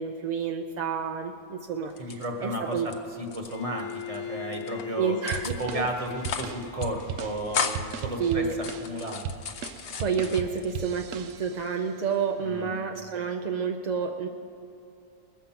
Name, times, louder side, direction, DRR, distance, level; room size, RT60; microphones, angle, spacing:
voice 1, 0.0-2.9 5.0-5.9 8.2-8.6 10.0-14.3, right 6 dB, 55° right, 4 dB, 0.5 m, -29 dB
sound 1, 1.9-2.9 3.2-4.2 4.5-4.8 5.3-5.8 6.1-6.5 6.8-6.9 7.2-8.0 8.5-10.7 11.1-11.7, left 6 dB, 60° left, 0.8 m, -35 dB
voice 2, 2.0-2.8 3.2-5.2 5.6-8.4 8.8-9.2 12.4-12.7, right 1 dB, 30° right, 3 dB, 1.2 m, -33 dB
Bowed string instrument, 3.5-8.4, left 9 dB, 85° left, 1.0 m, -41 dB
sound 2, 5.3-11.7, right 7 dB, 80° right, 1.0 m, -37 dB
20.5 x 7.3 x 5.8 m, 2.5 s
omnidirectional pair, 1.3 m